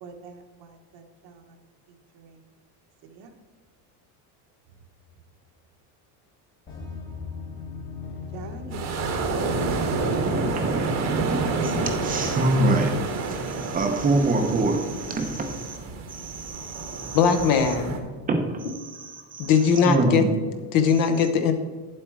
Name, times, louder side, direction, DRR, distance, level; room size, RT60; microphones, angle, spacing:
voice 1, 0.0-1.4 2.2-2.3 3.1-3.3 8.3-8.9 9.2-10.2, right 4 dB, 50° right, 1.3 m, -43 dB
sound 1, 6.7-12.5, left 5 dB, 25° left, 1.2 m, -38 dB
sound 2, 8.7-18.0, right 3 dB, 35° right, 1.2 m, -29 dB
voice 2, 9.6-15.8 16.1-17.2 18.2-19.5 19.8-20.3, right 2 dB, 15° right, 0.8 m, -26 dB
voice 3, 17.1-18.0 19.4-20.2 20.7-21.5, left 6 dB, 45° left, 1.0 m, -20 dB
9.6 x 7.7 x 4.7 m
cardioid pair, 170°, 48 cm